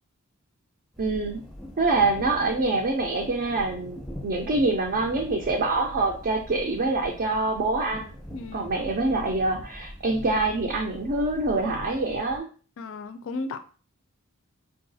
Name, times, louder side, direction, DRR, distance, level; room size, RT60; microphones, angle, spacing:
sound 1, 0.9-12.4, equal, ahead, 0.6 m, -42 dB
voice 1, 1.0-1.4 1.8-8.1 8.5-12.5, right 2 dB, 45° right, 1 dB, 0.4 m, -25 dB
voice 2, 8.3-8.7 12.8-13.6, left 3 dB, 65° left, 9 dB, 0.4 m, -34 dB
4.6 x 2.3 x 2.6 m, 0.39 s
head